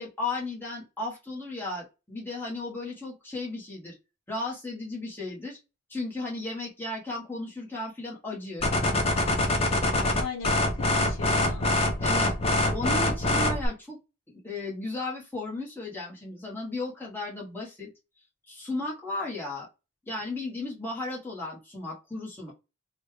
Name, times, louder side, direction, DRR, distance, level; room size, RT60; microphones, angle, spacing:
voice 1, 0.0-3.9 4.3-5.6 5.9-8.8 12.0-12.3 12.7-14.0 14.4-17.9 18.5-19.7 20.1-22.5, left 2 dB, 10° left, -5 dB, 1.3 m, -35 dB
sound 1, 8.6-13.7, left 1 dB, 30° left, 0.6 m, -25 dB
voice 2, 10.0-11.7, left 5 dB, 75° left, 4 dB, 0.8 m, -39 dB
4.1 x 2.3 x 3.2 m, 0.27 s
head